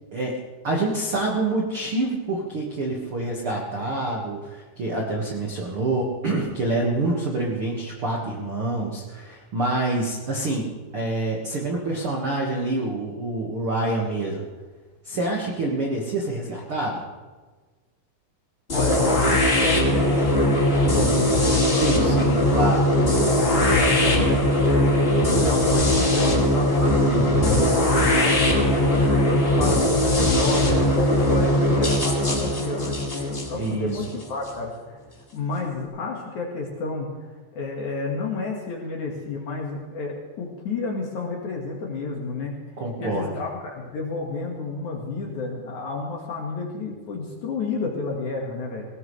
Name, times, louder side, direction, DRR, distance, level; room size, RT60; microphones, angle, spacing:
voice 1, 0.6-10.7 10.9-14.4 15.0-17.0 20.9-22.8 27.0-27.7 33.5-34.0 42.8-43.4, right 2 dB, 60° right, -1 dB, 1.4 m, -27 dB
voice 2, 18.7-19.3 19.6-23.1 23.4-27.0 27.4-35.0 35.3-37.1 37.5-42.5 43.0-48.9, left 3 dB, 55° left, -1 dB, 2.5 m, -31 dB
sound 1, 18.7-34.5, left 1 dB, 25° left, 1.3 m, -20 dB
19.5 x 18.0 x 3.3 m, 1.3 s
omnidirectional pair, 5.3 m